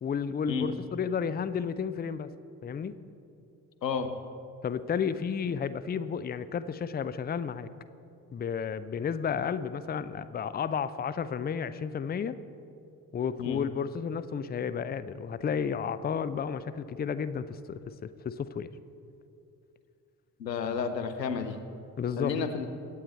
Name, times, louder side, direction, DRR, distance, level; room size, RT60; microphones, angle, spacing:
voice 1, 0.0-2.3 2.6-3.0 4.6-7.7 8.3-12.4 13.1-18.7 22.0-22.3, left 7 dB, 20° left, 13 dB, 0.6 m, -32 dB
voice 2, 3.8-4.1 13.4-13.6 20.4-21.6 22.2-22.7, left 6 dB, 85° left, 7 dB, 0.8 m, -31 dB
23.0 x 9.2 x 4.2 m, 2.6 s
figure-of-eight pair, 45°, 49 cm